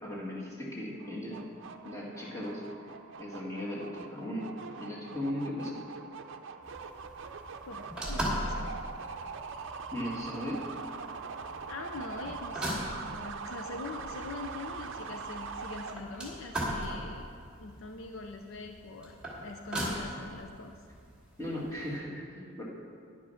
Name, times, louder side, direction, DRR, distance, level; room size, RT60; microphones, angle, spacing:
voice 1, 0.0-1.4 1.8-2.6 3.2-4.5 4.8-5.8 9.9-10.6 21.4-22.7, left 1 dB, 15° left, -5 dB, 2.0 m, -37 dB
sound 1, 1.0-15.9, right 5 dB, 60° right, 0.6 m, -43 dB
sound 2, 6.6-22.0, equal, 5° right, 2.3 m, -40 dB
voice 2, 7.6-8.7 11.7-17.3 17.6-19.1 19.4-20.8, left 3 dB, 65° left, 4 dB, 0.6 m, -43 dB
10.0 x 9.3 x 5.7 m, 2.3 s
head